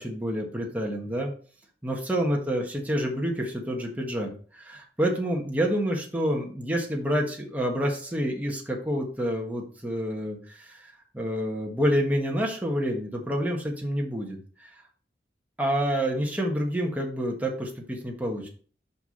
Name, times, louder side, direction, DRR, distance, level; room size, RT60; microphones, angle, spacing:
voice 1, 0.0-1.3 1.8-14.7 15.6-18.5, equal, 10° right, 0 dB, 1.3 m, -28 dB
5.9 x 5.5 x 4.1 m, 0.42 s
head